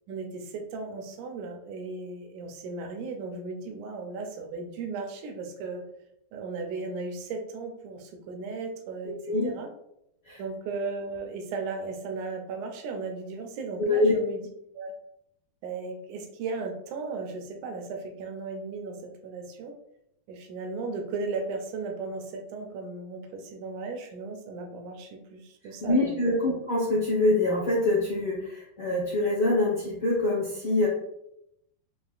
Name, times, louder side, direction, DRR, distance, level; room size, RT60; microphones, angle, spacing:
voice 1, 0.1-5.8 6.3-9.7 10.4-14.5 14.7-14.9 15.6-19.7 20.3-26.4, right 4 dB, 80° right, 4 dB, 1.7 m, -36 dB
voice 2, 9.0-9.5 10.2-10.4 13.8-14.2 25.6-30.9, left 2 dB, 90° left, -8 dB, 0.9 m, -25 dB
6.8 x 2.5 x 2.4 m, 0.81 s
omnidirectional pair, 4.1 m